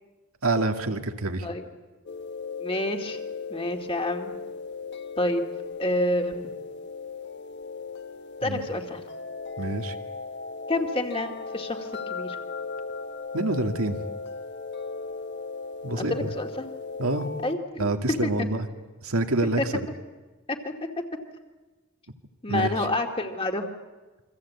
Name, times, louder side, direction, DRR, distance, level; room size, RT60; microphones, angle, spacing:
voice 1, 0.4-1.5 8.4-8.6 9.6-9.9 13.3-14.0 15.8-16.3 17.0-17.3 17.8-18.7 19.0-19.9 22.5-22.9, right 2 dB, 85° right, 5 dB, 2.2 m, -27 dB
sound 1, 2.1-17.6, left 4 dB, 55° left, 1.5 m, -37 dB
voice 2, 2.6-3.2 3.5-4.4 5.2-5.5 5.8-6.5 8.4-9.0 10.7-12.4 16.0-16.7 17.0-18.5 19.6-19.7 20.5-20.7 22.4-23.7, left 1 dB, 25° left, 4 dB, 2.2 m, -28 dB
28.0 x 24.0 x 8.5 m, 1.2 s
head